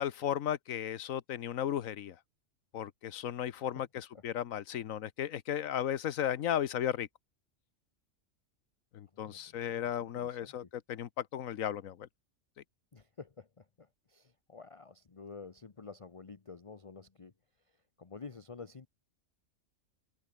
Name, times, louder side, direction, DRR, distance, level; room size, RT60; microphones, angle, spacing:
voice 1, 0.0-2.2 2.7-7.1 8.9-12.1, left 10 dB, 85° left, 1.3 m, -35 dB
voice 2, 9.1-10.5 12.9-17.3 18.0-18.9, left 4 dB, 30° left, 0.9 m, -50 dB
omnidirectional pair, 1.4 m